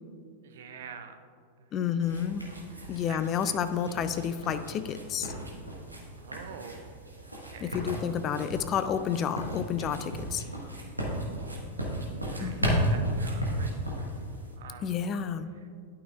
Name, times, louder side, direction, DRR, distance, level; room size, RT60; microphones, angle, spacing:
voice 1, 0.4-1.2 1.6-2.0 2.7-3.6 6.2-6.9 7.4-7.8 11.1-11.7 12.2-14.1 14.6-14.9, right 6 dB, 60° right, 6 dB, 0.6 m, -47 dB
voice 2, 1.7-2.4 2.9-5.3 7.6-10.4 12.4-12.9 14.8-15.5, left 8 dB, 30° left, 12 dB, 0.3 m, -30 dB
sound 1, 2.0-14.5, equal, 85° right, 1.3 m, -34 dB
11.5 x 5.7 x 2.3 m, 2.3 s
figure-of-eight pair, 90°, 0 cm